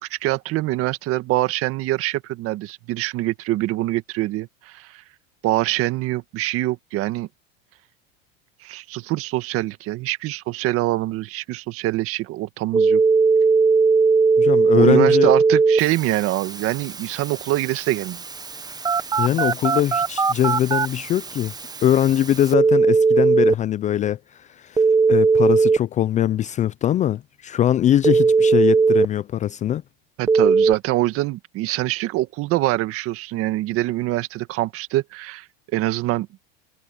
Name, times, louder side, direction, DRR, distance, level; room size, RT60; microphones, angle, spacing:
voice 1, 0.0-5.0 5.4-7.3 8.6-13.0 14.7-18.2 30.2-35.5 35.7-36.3, right 17 dB, 50° right, 1.8 m, -24 dB
Telephone, 12.7-23.5 24.8-25.8 28.0-29.1 30.3-30.7, right 4 dB, 15° right, 1.2 m, -19 dB
voice 2, 14.4-15.3 19.2-21.5 21.8-24.2 24.6-24.8 25.1-29.8, left 11 dB, 25° left, 0.4 m, -21 dB
supercardioid pair, 125°, 30 cm